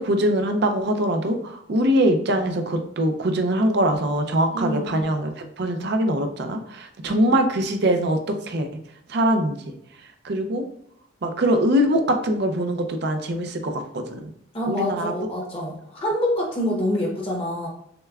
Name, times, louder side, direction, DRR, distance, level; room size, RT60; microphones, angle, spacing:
voice 1, 0.0-5.3 5.6-8.7 9.1-9.6 10.2-10.6 11.2-14.3 14.7-15.1, right 1 dB, 55° right, 6 dB, 0.5 m, -22 dB
voice 2, 4.5-5.0 14.5-17.7, left 1 dB, 25° left, -2 dB, 0.8 m, -26 dB
6.5 x 2.2 x 2.3 m, 0.72 s
head